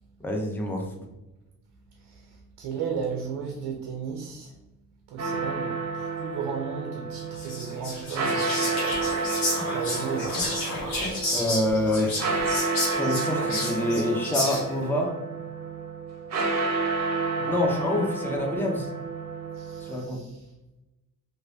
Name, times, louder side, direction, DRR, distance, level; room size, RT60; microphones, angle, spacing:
voice 1, 0.2-0.9 11.3-12.4 12.9-15.2 17.5-18.9 19.8-20.2, left 1 dB, 5° left, 1 dB, 0.6 m, -27 dB
voice 2, 1.9-4.6 5.1-8.8 9.7-11.0 17.4-17.6 19.5-20.5, right 6 dB, 75° right, 2 dB, 0.6 m, -35 dB
sound 1, 5.2-20.1, right 4 dB, 40° right, 0.8 m, -30 dB
Whispering, 7.4-14.8, left 1 dB, 70° left, 1.4 m, -31 dB
3.1 x 2.5 x 2.6 m, 1.0 s
supercardioid pair, 55°, 41 cm